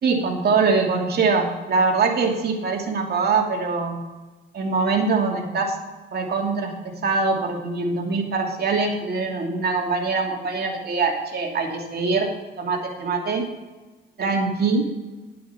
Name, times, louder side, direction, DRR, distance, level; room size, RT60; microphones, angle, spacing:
voice 1, 0.0-4.0 4.5-5.8 6.1-12.3 12.6-13.4 14.2-14.8, right 4 dB, 55° right, 1 dB, 2.7 m, -23 dB
11.0 x 8.4 x 5.9 m, 1.2 s
cardioid pair, 90°, 20 cm